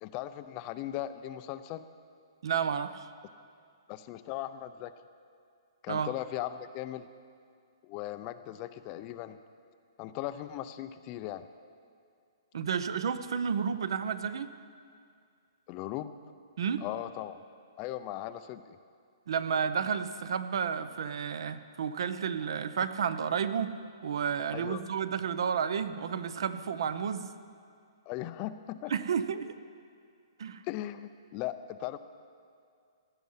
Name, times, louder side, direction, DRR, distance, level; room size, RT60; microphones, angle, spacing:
voice 1, 0.0-1.9 3.9-4.9 5.8-7.1 7.8-9.4 10.0-11.5 15.7-16.1 16.8-17.4 17.8-18.8 24.5-24.8 28.1-28.9 30.7-32.0, left 13 dB, 25° left, 12 dB, 0.4 m, -38 dB
voice 2, 2.4-3.1 5.9-6.1 12.5-14.5 16.6-16.8 19.3-23.8 24.0-27.3 28.9-29.6 30.4-30.6, right 7 dB, 65° right, 12 dB, 0.7 m, -31 dB
16.5 x 11.0 x 5.6 m, 2.3 s
hypercardioid pair, 160°, 3 cm